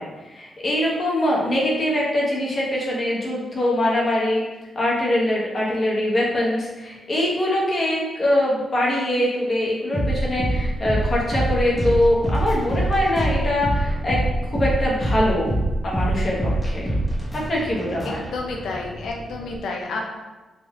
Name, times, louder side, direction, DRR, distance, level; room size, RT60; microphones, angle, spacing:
voice 1, 0.0-4.4 4.7-14.2 14.5-15.5 15.8-16.9 17.3-18.3, left 1 dB, 40° left, -4 dB, 1.0 m, -23 dB
sound 1, 9.9-19.6, right 1 dB, 10° left, 1.0 m, -25 dB
voice 2, 18.1-20.1, left 3 dB, 85° left, 1 dB, 0.5 m, -30 dB
3.6 x 2.5 x 3.6 m, 1.2 s
cardioid pair, 110°, 0 cm